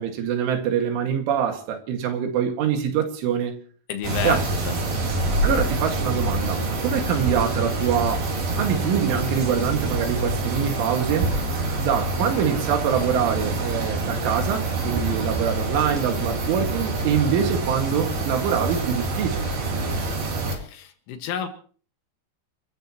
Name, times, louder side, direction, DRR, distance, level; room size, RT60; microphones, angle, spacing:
voice 1, 0.0-3.6 4.2-4.4 5.4-8.3 8.6-11.4 11.8-19.5, right 8 dB, 75° right, 4.4 m, -24 dB
voice 2, 3.9-5.1 20.5-21.5, left 8 dB, 75° left, 4.1 m, -32 dB
sound 1, 4.0-20.6, right 2 dB, 50° right, 5.2 m, -26 dB
29.5 x 14.0 x 3.0 m
omnidirectional pair, 5.7 m